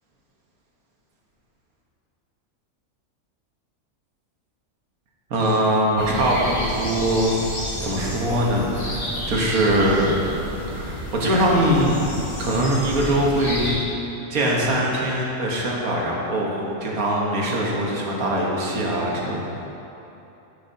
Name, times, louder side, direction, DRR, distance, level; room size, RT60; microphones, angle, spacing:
voice 1, 5.3-7.4 7.8-10.1 10.7-12.1 12.4-13.8 14.3-19.4, right 1 dB, 80° right, -3 dB, 1.6 m, -22 dB
sound 1, 6.0-13.7, equal, 30° left, 1.4 m, -31 dB
10.0 x 8.4 x 2.8 m, 3.0 s
omnidirectional pair, 1.5 m